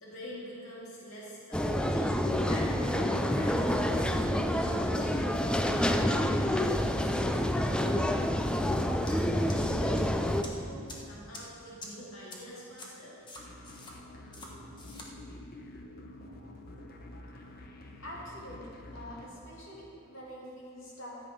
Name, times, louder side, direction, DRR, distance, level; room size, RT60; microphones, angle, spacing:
voice 1, 0.0-2.1 2.5-4.0 4.6-8.2 9.0-10.0 10.4-13.2, equal, 80° left, -5 dB, 2.1 m, -45 dB
sound 1, 1.5-10.4, left 1 dB, 5° left, 0.4 m, -28 dB
sound 2, 9.1-9.2 9.5-10.0 10.4-10.5 10.9-11.0 11.3-11.4 11.8-11.9 12.3-12.4 12.8-12.9 13.3-13.9 14.3-14.5 14.8-15.1, left 2 dB, 20° left, 1.3 m, -45 dB
sound 3, 13.4-19.3, left 1 dB, 45° left, 0.9 m, -48 dB
voice 2, 18.0-21.2, equal, 65° left, -5 dB, 2.8 m, -45 dB
13.5 x 8.4 x 5.3 m, 2.5 s
head